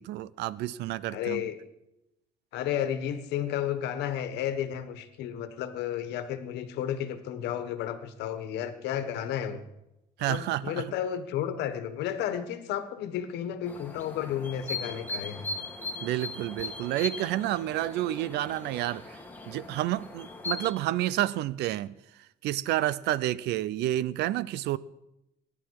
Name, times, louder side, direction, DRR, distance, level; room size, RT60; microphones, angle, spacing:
voice 1, 0.0-1.4 10.2-10.9 16.0-19.2 19.5-21.9 22.4-24.8, right 14 dB, 80° right, 0.6 m, -30 dB
voice 2, 1.1-1.6 2.5-9.6 10.3-15.5, left 10 dB, 85° left, 1.4 m, -32 dB
sound 1, 13.7-20.7, left 3 dB, 10° left, 2.5 m, -39 dB
24.0 x 11.0 x 4.8 m
cardioid pair, 110°, 17 cm